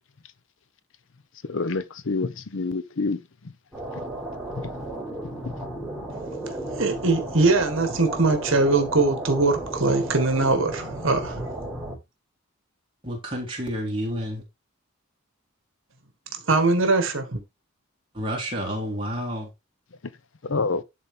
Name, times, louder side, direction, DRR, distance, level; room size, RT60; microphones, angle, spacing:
voice 1, 1.5-3.2 20.5-20.8, left 3 dB, 60° left, 0.7 m, -27 dB
sound 1, 3.7-12.0, right 1 dB, 5° right, 3.6 m, -34 dB
voice 2, 6.8-11.5 16.5-17.4, right 3 dB, 65° right, 1.6 m, -22 dB
voice 3, 13.0-14.4 18.1-19.5, equal, 25° right, 3.4 m, -30 dB
11.0 x 4.0 x 3.6 m
head